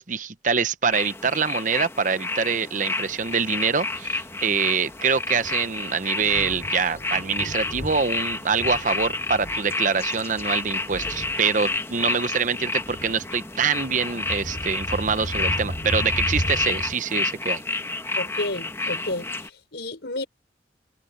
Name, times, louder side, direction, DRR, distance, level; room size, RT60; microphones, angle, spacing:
voice 1, 0.0-17.6, right 5 dB, 45° right, 0.9 m, -25 dB
sound 1, 0.9-19.5, left 3 dB, 15° left, 1.2 m, -30 dB
Thunder, 3.3-16.9, equal, 55° left, 6.3 m, -36 dB
voice 2, 18.1-20.3, left 2 dB, 75° left, 5.1 m, -31 dB
head